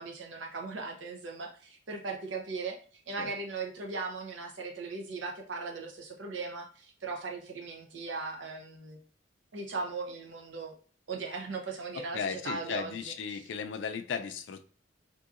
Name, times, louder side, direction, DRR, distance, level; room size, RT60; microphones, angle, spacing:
voice 1, 0.0-9.0 9.5-10.7 11.1-13.5, right 4 dB, 85° right, 1 dB, 0.7 m, -38 dB
voice 2, 12.0-14.6, left 6 dB, 70° left, 8 dB, 0.4 m, -36 dB
3.7 x 2.7 x 2.4 m, 0.42 s
head